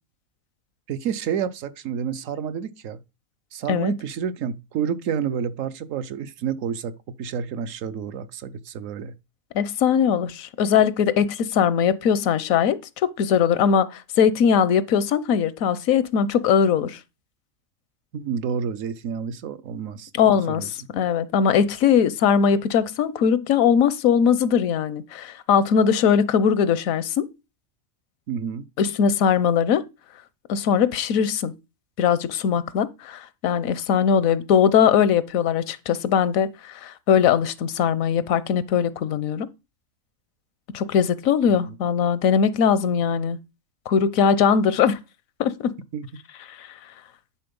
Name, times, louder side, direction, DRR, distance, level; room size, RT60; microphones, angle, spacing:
voice 1, 0.9-3.0 3.5-9.1 18.1-20.9 28.3-28.7 41.7-41.8 45.9-46.1, right 7 dB, 75° right, 1.1 m, -29 dB
voice 2, 9.5-17.0 20.1-27.3 28.8-29.8 30.5-31.5 32.0-39.5 40.7-43.4 43.9-45.0 45.4-45.7 46.6-46.7, left 7 dB, 85° left, 1.1 m, -20 dB
10.0 x 3.8 x 5.3 m
omnidirectional pair, 1.4 m